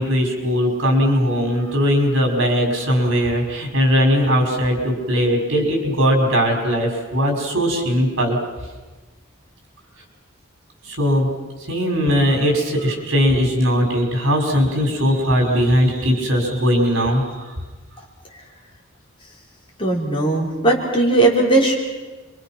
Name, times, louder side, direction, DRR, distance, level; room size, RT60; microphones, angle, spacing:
voice 1, 0.0-8.4 10.8-11.3 11.7-17.5, equal, 65° right, 1 dB, 5.8 m, -19 dB
voice 2, 19.8-21.7, right 2 dB, 25° left, -2 dB, 4.3 m, -17 dB
28.0 x 24.5 x 6.1 m, 1.3 s
head